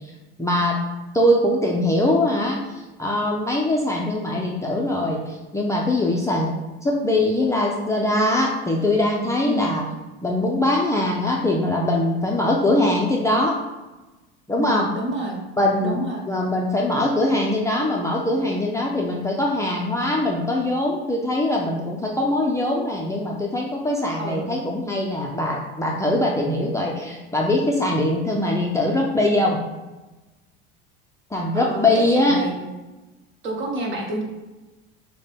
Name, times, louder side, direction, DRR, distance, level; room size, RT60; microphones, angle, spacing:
voice 1, 0.4-0.8 1.1-6.5 6.8-9.8 10.2-13.5 14.5-14.9 15.6-29.6 31.3-32.4, left 1 dB, 10° left, -2 dB, 0.5 m, -22 dB
voice 2, 9.4-9.8 14.6-15.4 15.8-16.3 24.2-24.5 31.5-32.5 33.4-34.2, right 2 dB, 40° right, 0 dB, 1.3 m, -29 dB
6.3 x 2.2 x 3.5 m, 1.1 s
supercardioid pair, 105°, 29 cm